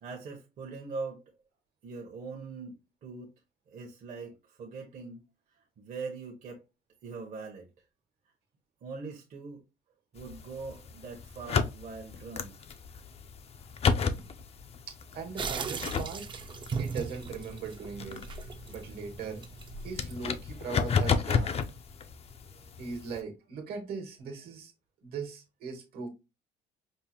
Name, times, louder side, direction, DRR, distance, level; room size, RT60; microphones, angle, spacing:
voice 1, 0.0-1.2 1.8-3.3 3.7-5.2 5.8-6.6 7.0-7.7 8.8-9.6 10.1-12.7, right 4 dB, 50° right, 0.9 m, -42 dB
sound 1, 10.2-23.2, left 6 dB, 35° left, 0.5 m, -33 dB
voice 2, 15.1-16.4 16.8-18.2 18.7-19.5 19.8-21.5 22.8-24.7 25.0-26.1, right 5 dB, 70° right, 1.3 m, -39 dB
sound 2, 15.4-20.4, right 5 dB, 30° right, 0.5 m, -38 dB
5.3 x 2.0 x 2.9 m
cardioid pair, 110°, 17 cm